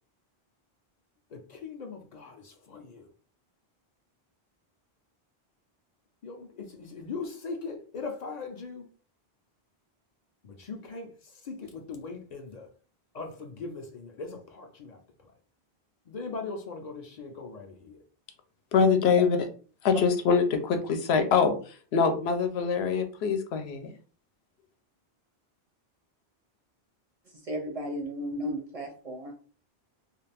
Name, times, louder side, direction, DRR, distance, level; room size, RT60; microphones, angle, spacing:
voice 1, 1.3-3.1 6.2-8.8 10.4-11.1 11.4-12.7 13.1-15.0 16.1-18.0, left 4 dB, 55° left, 0.5 m, -40 dB
voice 2, 18.7-19.4 19.8-21.5 21.9-23.9, left 5 dB, 85° left, 0.8 m, -24 dB
voice 3, 27.5-29.3, equal, 45° right, 0.5 m, -34 dB
2.4 x 2.3 x 3.3 m
omnidirectional pair, 1.0 m